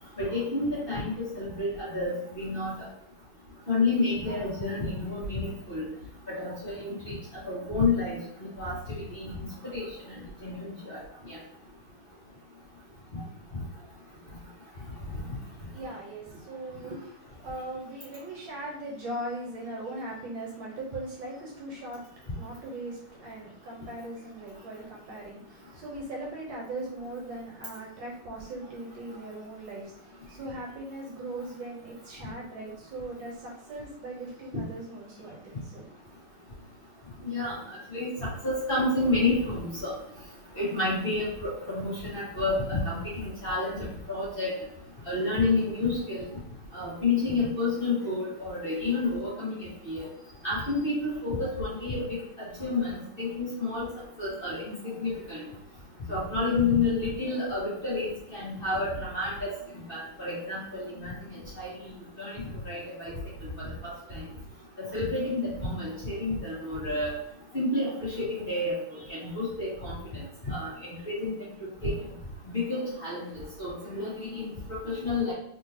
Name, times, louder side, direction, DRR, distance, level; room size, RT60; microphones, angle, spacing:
voice 1, 0.2-2.7 3.7-5.8 6.4-7.1 7.4-9.4 9.7-11.0 11.3-11.4 37.2-37.6 37.9-39.9 40.5-43.8 44.1-44.5 45.0-46.2 46.7-50.1 50.4-52.2 52.6-53.8 54.2-55.4 56.1-59.5 59.9-61.1 61.6-61.7 62.2-63.2 63.6-63.7 64.1-64.2 64.9-67.1 67.5-68.7 69.1-70.0 70.5-70.7 71.0-71.3 71.6-71.9 72.5-73.2 73.6-74.5 74.8-75.3, left 3 dB, 30° left, -9 dB, 1.5 m, -30 dB
voice 2, 15.5-35.9, right 1 dB, 65° right, -3 dB, 1.6 m, -39 dB
3.8 x 3.7 x 2.8 m, 0.73 s
omnidirectional pair, 2.4 m